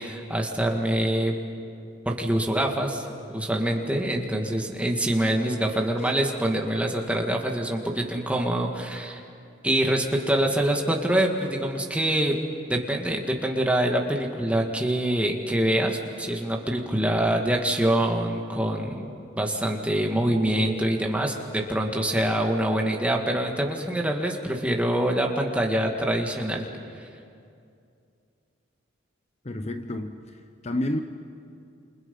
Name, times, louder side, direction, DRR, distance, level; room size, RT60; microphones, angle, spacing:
voice 1, 0.0-1.4 2.1-3.0 3.3-9.2 9.6-12.4 12.7-19.0 19.4-26.6 27.0-27.1, right 1 dB, 5° right, 1 dB, 1.9 m, -25 dB
voice 2, 29.4-31.0, left 1 dB, 35° left, 7 dB, 0.8 m, -30 dB
29.5 x 28.5 x 5.4 m, 2.5 s
head